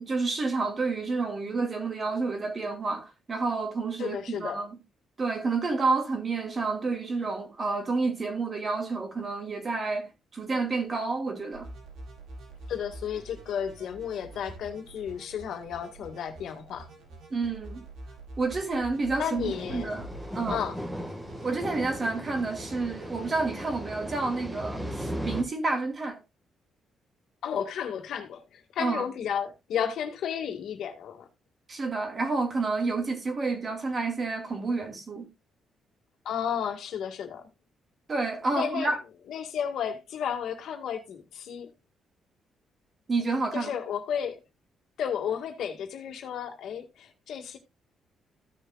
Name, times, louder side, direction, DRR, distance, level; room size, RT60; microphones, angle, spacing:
voice 1, 0.0-4.7 5.2-11.7 17.3-17.8 18.4-20.1 20.3-20.6 21.4-26.2 28.8-29.0 31.7-35.3 38.1-39.0 43.1-43.7, right 3 dB, 30° right, 2.4 m, -29 dB
voice 2, 4.0-4.6 12.7-16.9 19.2-19.9 20.5-20.8 27.4-31.3 36.3-37.5 38.5-38.9 39.3-41.7 43.5-44.4 45.0-47.6, left 8 dB, 70° left, 1.9 m, -33 dB
sound 1, 11.5-23.5, right 2 dB, 70° right, 5.1 m, -46 dB
sound 2, 19.4-25.4, equal, 5° right, 1.7 m, -37 dB
15.5 x 6.6 x 2.4 m
cardioid pair, 145°, 0 cm